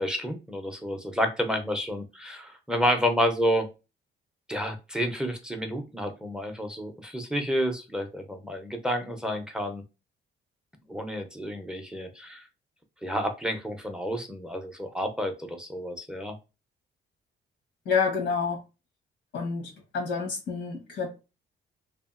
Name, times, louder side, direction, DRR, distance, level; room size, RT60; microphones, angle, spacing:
voice 1, 0.0-3.7 4.5-9.8 10.9-12.4 13.0-16.3, equal, 5° right, 0.5 m, -30 dB
voice 2, 17.8-18.6 19.3-21.1, left 5 dB, 80° left, 1.0 m, -28 dB
2.7 x 2.4 x 2.4 m
cardioid pair, 90°, 20 cm